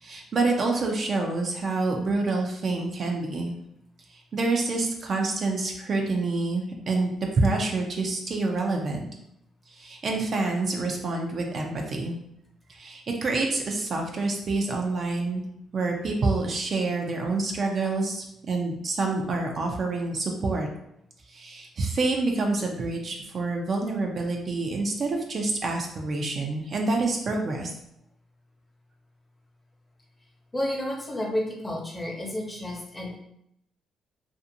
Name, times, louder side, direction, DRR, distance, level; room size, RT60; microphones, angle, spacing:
voice 1, 0.0-3.5 4.1-9.1 9.7-12.2 12.7-15.4 15.7-20.7 21.3-27.7, right 3 dB, 50° right, 1 dB, 0.5 m, -27 dB
voice 2, 30.5-33.2, left 1 dB, 20° left, -1 dB, 0.8 m, -31 dB
2.5 x 2.4 x 2.7 m, 0.77 s
supercardioid pair, 60°, 0 cm